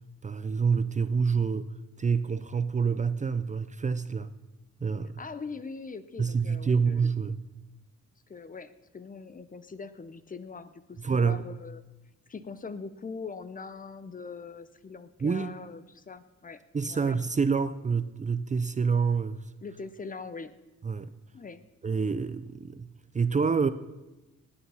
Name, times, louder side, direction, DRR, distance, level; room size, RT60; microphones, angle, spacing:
voice 1, 0.2-1.7 2.0-4.3 4.8-5.2 6.2-7.4 11.0-11.4 15.2-15.5 16.7-19.4 20.8-21.1 21.8-22.9 23.1-23.7, right 5 dB, 25° right, 13 dB, 0.6 m, -27 dB
voice 2, 5.2-7.1 8.3-11.8 12.3-16.6 16.9-17.2 19.6-20.5 21.3-21.6, left 4 dB, 25° left, 13 dB, 0.8 m, -42 dB
19.0 x 8.7 x 5.6 m, 1.1 s
cardioid pair, 90°, 30 cm